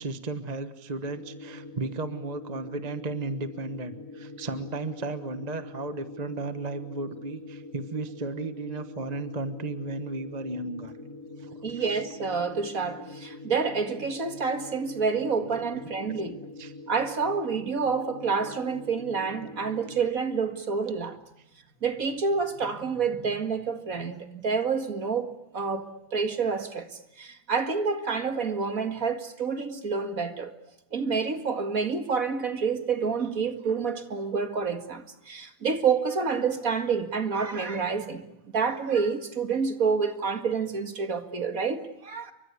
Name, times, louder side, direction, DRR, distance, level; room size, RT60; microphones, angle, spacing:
voice 1, 0.0-10.9 11.4-12.0 15.5-15.6 16.6-16.7, right 3 dB, 25° right, 1.2 m, -34 dB
sound 1, 1.0-20.0, left 3 dB, 15° left, 2.2 m, -44 dB
voice 2, 11.6-16.4 16.9-21.2 21.8-30.5 30.9-38.2 38.5-42.3, right 5 dB, 50° right, 2.4 m, -28 dB
29.0 x 24.5 x 8.3 m
omnidirectional pair, 2.0 m